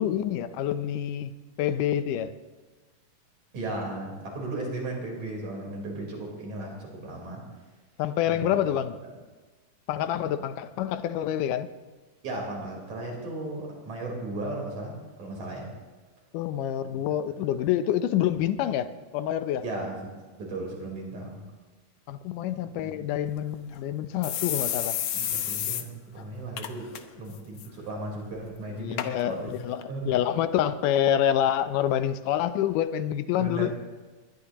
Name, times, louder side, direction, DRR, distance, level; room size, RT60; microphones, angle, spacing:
voice 1, 0.0-1.3 1.6-2.3 8.0-9.0 9.9-11.7 16.3-19.7 22.1-25.0 28.8-33.8, left 10 dB, 90° left, 2.3 m, -27 dB
voice 2, 3.5-7.4 8.3-8.6 9.0-9.1 10.2-10.4 12.2-15.7 16.9-17.0 19.6-20.0 20.4-21.4 22.5-22.9 25.1-29.5 29.9-30.3 33.4-33.7, right 2 dB, 65° right, 5.5 m, -36 dB
sound 1, 23.3-23.4 23.7-23.8 24.2-25.8 26.2-26.3 26.6-27.0 27.3-27.7 28.3-28.4 29.0-29.1 29.8-29.9, left 10 dB, 70° left, 1.4 m, -30 dB
21.5 x 20.5 x 3.0 m
omnidirectional pair, 3.6 m